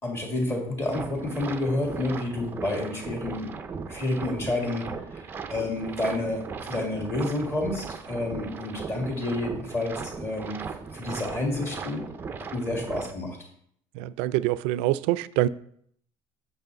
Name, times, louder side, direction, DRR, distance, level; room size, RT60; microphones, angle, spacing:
voice 1, 0.0-3.5 3.9-4.9 5.1-5.2 5.5-10.6 10.9-12.0 12.5-13.4, left 2 dB, 25° left, 2.0 m, -29 dB
sound 1, 0.9-13.1, right 5 dB, 20° right, 0.5 m, -38 dB
voice 2, 14.0-15.5, right 15 dB, 85° right, 0.4 m, -25 dB
8.0 x 6.3 x 3.9 m
cardioid pair, 170°, 11 cm